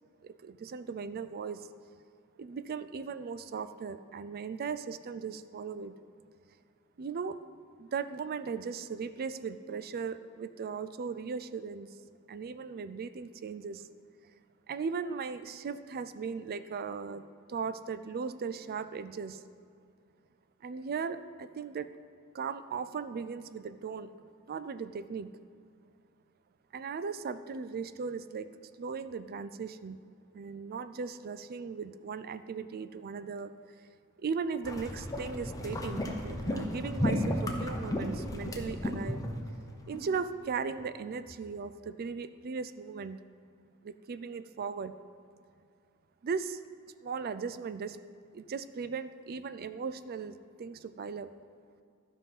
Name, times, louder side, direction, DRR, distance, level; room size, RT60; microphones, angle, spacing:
voice 1, 0.2-1.7 2.4-5.9 7.0-7.4 7.8-11.9 12.3-13.8 14.7-17.2 17.5-19.4 20.6-21.9 22.3-25.3 26.7-30.0 30.3-33.5 34.2-39.2 39.9-43.2 43.8-44.9 46.2-46.6 47.0-48.0 48.3-51.3, right 5 dB, 45° right, 12 dB, 0.4 m, -37 dB
sound 1, 34.6-40.2 40.8-40.9 41.3-41.4, left 1 dB, 15° left, 0.9 m, -34 dB
12.5 x 5.5 x 5.4 m, 2.3 s
head